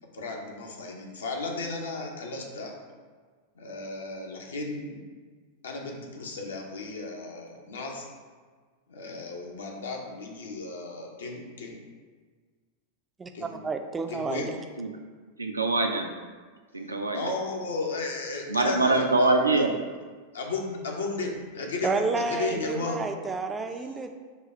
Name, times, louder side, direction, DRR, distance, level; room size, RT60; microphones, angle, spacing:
voice 1, 0.1-2.7 3.6-5.0 5.6-8.1 8.9-11.8 13.3-13.6 14.1-14.5 17.1-19.6 20.3-23.0, left 3 dB, 65° left, 1 dB, 0.7 m, -34 dB
voice 2, 13.2-14.5 21.8-24.1, right 4 dB, 15° right, 5 dB, 0.4 m, -30 dB
voice 3, 15.4-16.1 16.7-17.2 18.5-19.7, right 2 dB, 80° right, 3 dB, 0.4 m, -23 dB
5.0 x 2.3 x 4.2 m, 1.5 s
figure-of-eight pair, 90°, 0 cm